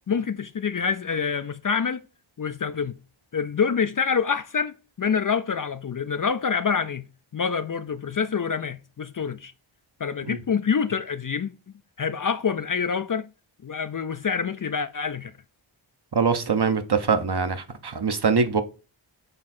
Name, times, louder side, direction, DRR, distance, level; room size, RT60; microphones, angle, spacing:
voice 1, 0.1-2.0 2.4-3.0 3.3-7.1 7.3-9.5 10.0-11.5 12.0-13.2 13.6-15.3, left 6 dB, 45° left, 0.4 m, -26 dB
voice 2, 16.1-18.6, right 5 dB, 50° right, 0.9 m, -23 dB
6.6 x 3.6 x 4.2 m
wide cardioid pair, 60°, 50 cm